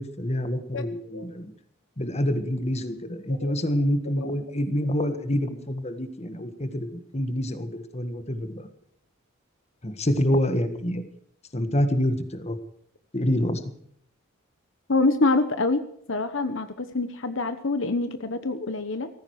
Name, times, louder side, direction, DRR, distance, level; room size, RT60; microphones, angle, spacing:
voice 1, 0.0-1.5 2.0-8.7 9.8-11.0 11.5-12.6 13.1-13.6, equal, 30° left, 9 dB, 1.7 m, -27 dB
voice 2, 14.9-19.1, left 3 dB, 65° left, 10 dB, 1.1 m, -25 dB
18.5 x 15.0 x 4.8 m, 0.68 s
head